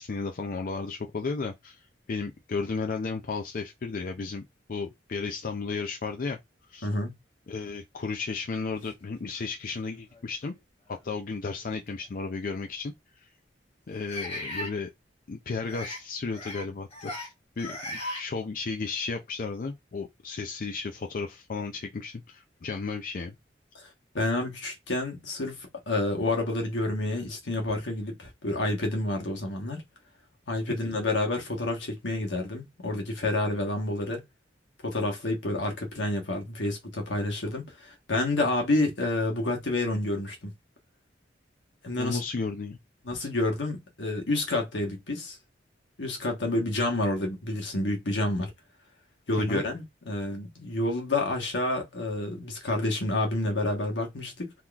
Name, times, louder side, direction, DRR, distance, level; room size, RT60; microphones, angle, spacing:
voice 1, 0.0-4.4 4.7-6.4 6.7-6.9 7.5-10.6 11.0-12.9 13.2-13.3 13.9-14.9 15.3-23.4 30.7-30.8 42.0-42.8 49.4-49.6, left 4 dB, 50° left, 0.4 m, -34 dB
voice 2, 6.8-7.1 23.8-23.9 24.1-29.8 30.5-34.2 34.8-40.5 41.8-42.2 43.0-45.4 46.0-48.5 49.3-54.5, left 2 dB, 80° left, 1.3 m, -29 dB
sound 1, 9.3-9.4 10.1-10.3 11.9-12.0 14.1-14.7 15.6-16.0 16.3-16.6 16.9-17.3 17.6-18.2, left 1 dB, 30° left, 1.1 m, -36 dB
3.6 x 2.9 x 2.4 m
head